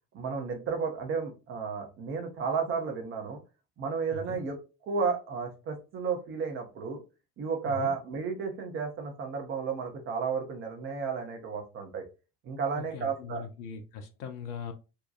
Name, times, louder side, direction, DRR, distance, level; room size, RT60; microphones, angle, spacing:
voice 1, 0.1-3.4 3.8-4.6 4.9-7.0 7.4-12.1 12.4-13.4, right 5 dB, 25° right, 0.7 m, -32 dB
voice 2, 4.1-4.4 7.7-7.9 12.7-14.7, left 6 dB, 70° left, 0.6 m, -40 dB
2.8 x 2.2 x 2.3 m
figure-of-eight pair, 70°, 49 cm